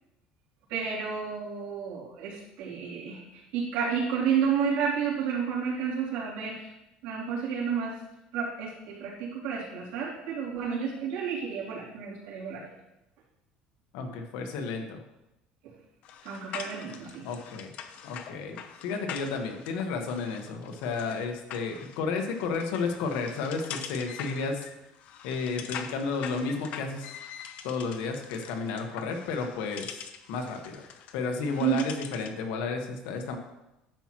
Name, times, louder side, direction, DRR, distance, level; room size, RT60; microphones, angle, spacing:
voice 1, 0.7-6.7 7.0-7.9 8.3-12.6 16.2-17.3 31.6-31.8, right 7 dB, 75° right, -5 dB, 3.1 m, -31 dB
voice 2, 13.9-15.0 17.2-17.7 18.0-24.7 25.2-27.1 27.6-30.0 30.3-30.8 31.1-33.4, left 4 dB, 85° left, 4 dB, 1.4 m, -32 dB
sound 1, 16.0-32.4, left 8 dB, 55° left, 0.7 m, -44 dB
10.5 x 7.4 x 3.0 m, 0.92 s
cardioid pair, 135°, 3 cm